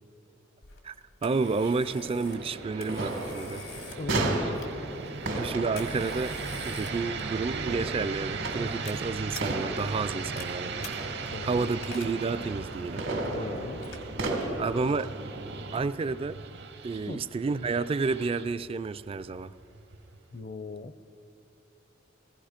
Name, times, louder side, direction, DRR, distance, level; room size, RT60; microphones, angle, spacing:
Telephone, 0.6-14.9, left 4 dB, 90° left, 1.8 m, -49 dB
voice 1, 1.2-3.6 5.4-6.4 6.6-10.9 11.4-13.1 14.6-15.1 15.7-16.4 16.8-19.5, right 4 dB, 30° right, 14 dB, 0.3 m, -30 dB
sound 1, 1.4-20.4, right 4 dB, 60° right, 0.8 m, -39 dB
sound 2, 1.4-15.9, right 2 dB, 85° right, 2.1 m, -35 dB
voice 2, 4.0-4.6 11.3-11.7 13.3-13.9 17.1-17.2 20.3-21.1, left 3 dB, 40° left, 12 dB, 0.5 m, -39 dB
16.0 x 15.0 x 5.0 m, 2.8 s
head